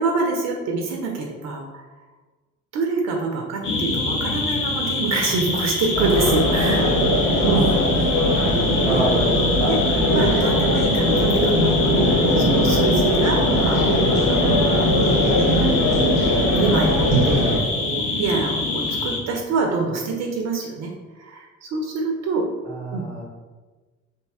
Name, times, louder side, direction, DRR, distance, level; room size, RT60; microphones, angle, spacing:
voice 1, 0.0-1.8 2.7-6.9 7.4-7.7 9.7-9.8 10.1-13.8 14.3-15.8 16.2-20.9 21.2-22.5 22.9-23.1, right 3 dB, 45° right, 1 dB, 0.5 m, -26 dB
sound 1, 3.6-19.2, left 3 dB, 75° left, 0.6 m, -25 dB
sound 2, 5.9-17.6, equal, 45° left, 0.9 m, -20 dB
voice 2, 8.9-9.9 22.6-23.2, right 1 dB, 15° left, -3 dB, 0.9 m, -28 dB
2.9 x 2.7 x 2.2 m, 1.3 s
figure-of-eight pair, 50°, 37 cm